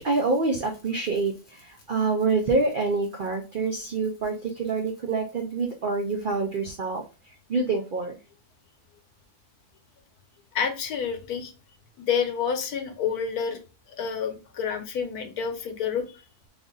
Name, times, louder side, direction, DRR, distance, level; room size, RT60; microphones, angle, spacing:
voice 1, 0.0-7.0 7.5-8.2, right 3 dB, 80° right, 3 dB, 0.4 m, -26 dB
voice 2, 10.5-11.5 12.0-13.6 14.0-16.2, left 7 dB, 75° left, 7 dB, 1.2 m, -28 dB
3.5 x 2.5 x 3.7 m, 0.32 s
omnidirectional pair, 1.6 m